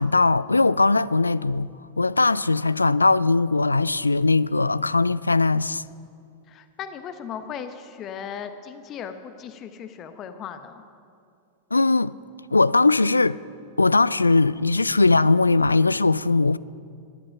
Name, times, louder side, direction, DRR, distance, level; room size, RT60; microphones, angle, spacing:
voice 1, 0.0-1.7 2.0-5.8 11.7-12.1 12.5-13.4 13.8-16.6, left 3 dB, 80° left, 0.3 m, -20 dB
voice 2, 6.5-10.8, left 7 dB, 35° left, 1.0 m, -37 dB
18.5 x 11.5 x 5.8 m
figure-of-eight pair, 90°, 0 cm